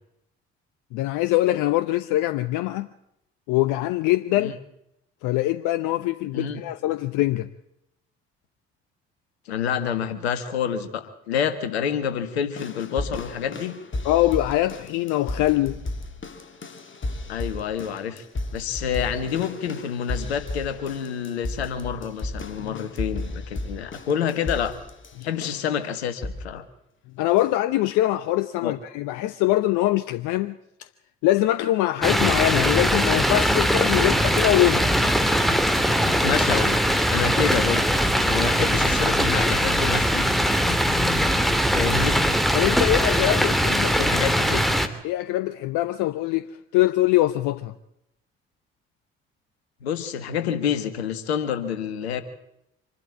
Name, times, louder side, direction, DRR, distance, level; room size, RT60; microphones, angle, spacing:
voice 1, 0.9-2.9 3.5-4.5 5.2-7.5 14.0-15.8 27.2-30.6 31.2-34.8 42.5-44.1 45.0-46.5 46.7-47.7, left 16 dB, 70° left, 0.9 m, -23 dB
voice 2, 9.5-13.7 17.3-18.2 18.5-24.7 25.2-26.6 28.6-28.7 36.2-36.8 37.1-37.8 38.2-40.3 41.7-42.2 43.9-44.6 49.8-52.2, left 8 dB, 90° left, 1.7 m, -28 dB
sound 1, 12.6-25.8 26.2-26.6 27.4-27.5, left 2 dB, 40° left, 3.2 m, -34 dB
sound 2, 32.0-44.9, equal, ahead, 2.8 m, -21 dB
26.0 x 12.0 x 8.7 m
hypercardioid pair, 50°, 31 cm